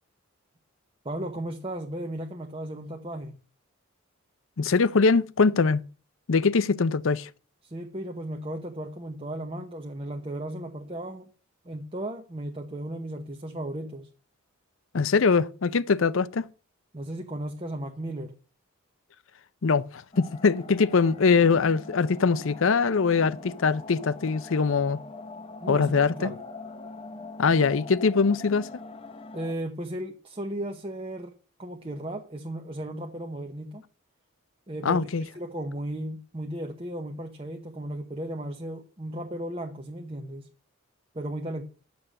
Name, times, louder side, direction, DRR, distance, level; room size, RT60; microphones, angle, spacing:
voice 1, 1.0-3.4 7.6-11.3 11.6-14.1 16.9-18.3 25.6-26.4 29.3-31.3 31.6-33.8 34.7-35.1 35.3-40.5 41.1-41.7, right 1 dB, 25° right, 0.9 m, -35 dB
voice 2, 4.6-5.8 6.3-7.3 14.9-16.5 19.6-25.0 25.7-26.3 27.4-28.7 34.8-35.2, left 5 dB, 65° left, 0.6 m, -22 dB
sound 1, 20.1-29.5, left 3 dB, 25° left, 0.9 m, -43 dB
10.0 x 6.9 x 6.5 m
head